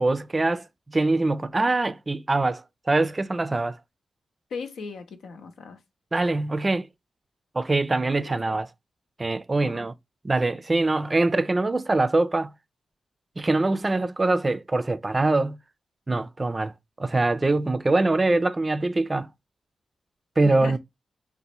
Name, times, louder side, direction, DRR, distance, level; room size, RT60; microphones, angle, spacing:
voice 1, 0.0-3.8 6.1-6.9 7.5-8.7 9.2-9.9 10.2-12.5 13.4-15.6 16.1-16.7 17.0-19.3 20.4-20.8, right 2 dB, 30° right, 0.4 m, -23 dB
voice 2, 4.5-5.8 8.2-8.6 9.6-9.8 20.4-20.8, left 5 dB, 85° left, 0.7 m, -38 dB
4.0 x 2.1 x 2.8 m
cardioid pair, 55°, 0 cm